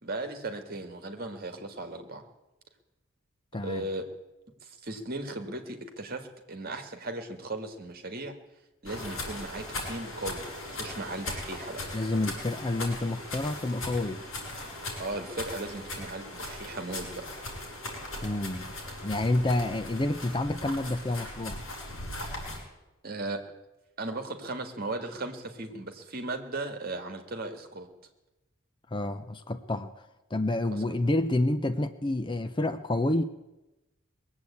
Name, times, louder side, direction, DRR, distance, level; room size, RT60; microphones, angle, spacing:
voice 1, 0.0-2.2 3.6-4.0 4.6-8.4 8.8-11.8 15.0-17.3 23.0-23.4 24.0-27.9 30.7-30.8, right 2 dB, 45° right, 6 dB, 1.8 m, -37 dB
voice 2, 3.5-3.9 11.9-14.2 18.2-18.7 19.0-21.6 28.9-30.1 30.3-33.2, left 2 dB, 20° left, 10 dB, 0.5 m, -29 dB
sound 1, 8.9-22.6, left 2 dB, 70° left, 6.3 m, -39 dB
20.5 x 8.0 x 8.4 m, 1.0 s
head